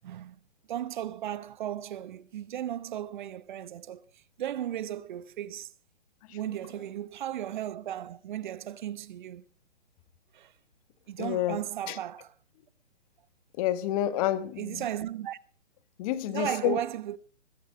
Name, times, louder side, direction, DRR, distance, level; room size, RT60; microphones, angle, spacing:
voice 1, 0.0-0.4 0.7-4.0 4.4-5.7 6.3-9.4 10.3-10.5 11.1-12.3 14.6-15.4 16.3-17.2, right 11 dB, 40° right, 0.9 m, -35 dB
voice 2, 11.2-11.6 11.9-12.0 13.6-14.8 16.0-16.8, left 13 dB, 30° left, 1.6 m, -29 dB
21.0 x 8.3 x 7.0 m
hypercardioid pair, 140°, 37 cm